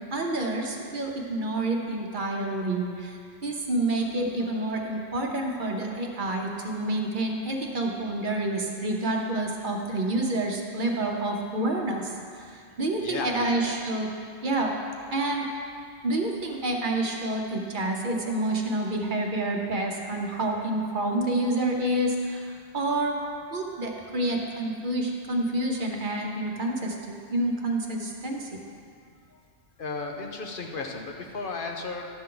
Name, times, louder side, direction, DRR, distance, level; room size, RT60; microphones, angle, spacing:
voice 1, 0.1-14.1 14.4-14.7 15.1-15.5 16.0-28.5, right 2 dB, 50° right, 0 dB, 1.0 m, -28 dB
voice 2, 13.0-13.8 29.8-32.1, left 3 dB, 55° left, 1 dB, 0.8 m, -34 dB
11.5 x 7.1 x 3.8 m, 2.3 s
omnidirectional pair, 1.1 m